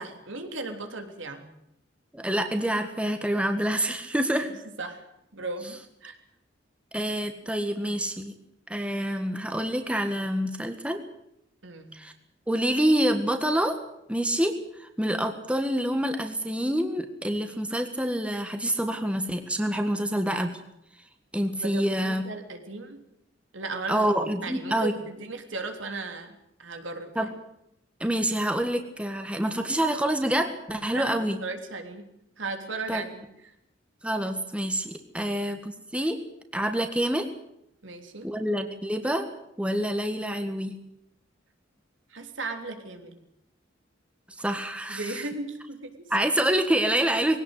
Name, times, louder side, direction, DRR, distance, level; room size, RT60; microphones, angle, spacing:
voice 1, 0.0-1.5 4.8-5.0 5.3-6.2 11.6-12.0 21.6-23.0 23.5-24.1 24.4-26.3 26.6-27.3 30.9-32.1 32.4-33.2 35.2-35.4 37.8-38.3 42.1-43.2 44.9-46.1, right 3 dB, 80° right, 5 dB, 3.5 m, -36 dB
voice 2, 2.1-4.5 6.9-8.3 8.7-11.0 11.9-12.1 12.5-13.8 14.1-20.6 21.3-22.2 23.9-24.9 27.1-27.3 28.0-31.4 32.9-33.0 34.0-36.2 36.5-37.3 38.2-39.3 39.6-40.7 44.4-45.2 46.1-47.4, right 1 dB, 5° right, 6 dB, 1.6 m, -27 dB
22.0 x 17.5 x 8.1 m, 0.78 s
head